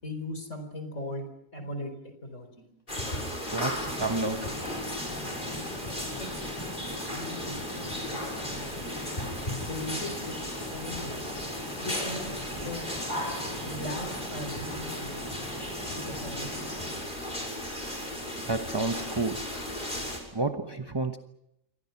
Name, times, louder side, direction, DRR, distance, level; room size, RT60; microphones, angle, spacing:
voice 1, 0.0-1.2 1.5-1.9 2.2-2.7 6.2-7.9 8.3-8.8 9.7-11.3 11.8-12.8 13.6-15.2 15.9-16.8, left 1 dB, 65° left, 4.9 m, -39 dB
sound 1, 2.9-20.2, left 1 dB, 35° left, 6.5 m, -35 dB
voice 2, 3.5-4.6 18.5-19.6 20.3-21.2, right 3 dB, 20° right, 1.1 m, -30 dB
sound 2, 3.6-16.9, equal, 15° left, 7.3 m, -42 dB
28.5 x 24.0 x 5.9 m
omnidirectional pair, 1.4 m